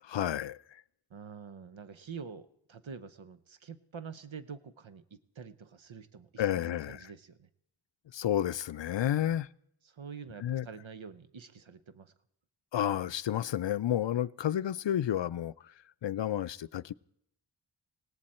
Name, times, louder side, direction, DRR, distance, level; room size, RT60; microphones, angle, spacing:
voice 1, 0.0-0.8 6.4-7.0 8.1-9.5 10.4-10.7 12.7-15.7 16.0-16.9, left 11 dB, 70° left, 0.5 m, -31 dB
voice 2, 1.1-7.5 9.8-12.1, right 6 dB, 85° right, 0.9 m, -47 dB
18.0 x 18.0 x 4.3 m
wide cardioid pair, 55°, 45 cm